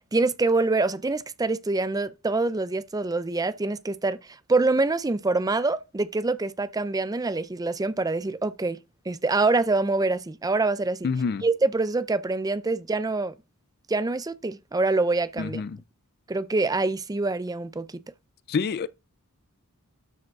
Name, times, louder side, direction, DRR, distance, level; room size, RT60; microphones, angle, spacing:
voice 1, 0.1-4.2 4.5-8.8 9.1-11.1 11.4-13.3 13.9-15.6 16.3-17.9, right 3 dB, 15° right, 0.5 m, -25 dB
voice 2, 11.0-11.4 15.4-15.8 18.5-18.9, left 5 dB, 45° left, 0.4 m, -27 dB
12.5 x 4.9 x 4.7 m
head